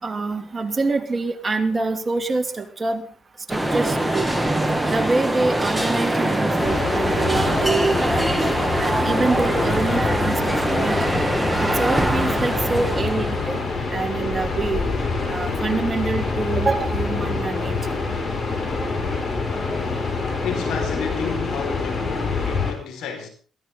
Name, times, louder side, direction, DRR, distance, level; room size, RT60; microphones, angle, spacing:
voice 1, 0.0-3.0 3.5-4.3 4.9-8.3 8.8-11.2 11.6-13.6 13.9-14.8 15.3-18.0, right 3 dB, 25° right, 2.9 m, -26 dB
sound 1, 3.5-13.5, right 1 dB, 5° right, 2.2 m, -23 dB
sound 2, 6.6-22.7, left 3 dB, 40° left, 5.9 m, -26 dB
voice 2, 20.4-23.3, left 7 dB, 80° left, 5.3 m, -31 dB
22.5 x 16.5 x 4.0 m
cardioid pair, 90°, 0 cm